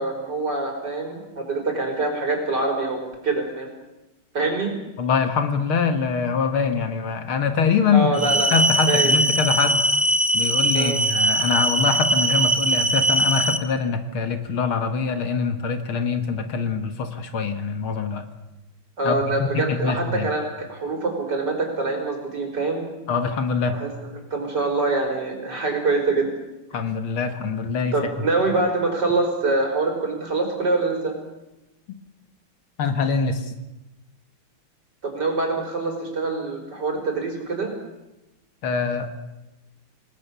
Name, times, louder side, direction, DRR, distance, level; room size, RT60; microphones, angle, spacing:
voice 1, 0.0-3.7 4.3-4.7 7.9-8.5 8.9-9.1 10.7-11.0 19.0-22.9 23.7-23.9 24.3-26.3 26.7-26.8 27.9-31.1 35.0-37.7, right 3 dB, 50° right, 2 dB, 5.6 m, -25 dB
voice 2, 5.0-9.8 10.3-18.3 19.0-20.3 23.1-23.8 26.7-28.3 32.8-33.5 38.6-39.1, left 5 dB, 70° left, 8 dB, 2.5 m, -24 dB
sound 1, 8.1-13.6, right 1 dB, 15° right, 0.5 m, -21 dB
28.0 x 19.5 x 7.0 m, 0.99 s
omnidirectional pair, 2.4 m